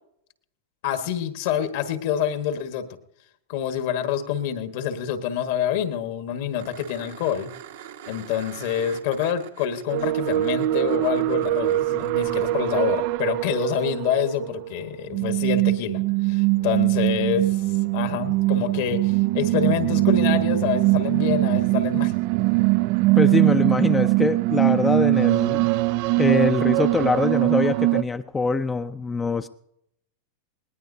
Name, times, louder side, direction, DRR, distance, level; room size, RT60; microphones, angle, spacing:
voice 1, 0.8-2.9 3.5-7.5 8.1-17.6 17.9-22.1, left 9 dB, 65° left, 8 dB, 1.5 m, -27 dB
sound 1, 6.6-12.1 14.8-14.9, right 10 dB, 75° right, 1.7 m, -43 dB
sound 2, 9.9-28.0, right 18 dB, 55° right, 0.4 m, -22 dB
voice 2, 23.2-25.7 26.2-29.5, left 4 dB, 15° left, 9 dB, 0.6 m, -24 dB
20.0 x 19.0 x 2.7 m, 0.78 s
hypercardioid pair, 100°, 0 cm